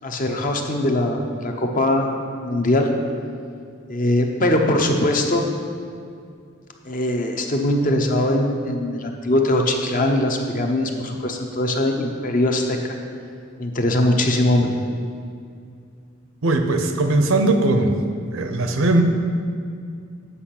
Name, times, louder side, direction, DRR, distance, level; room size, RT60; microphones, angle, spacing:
voice 1, 0.0-2.1 2.4-2.9 3.9-5.4 6.9-13.0 13.6-14.7, left 1 dB, 40° left, 3 dB, 0.8 m, -21 dB
voice 2, 16.4-18.0 18.3-19.0, right 2 dB, 75° right, 6 dB, 0.8 m, -19 dB
8.4 x 5.3 x 5.9 m, 2.3 s
head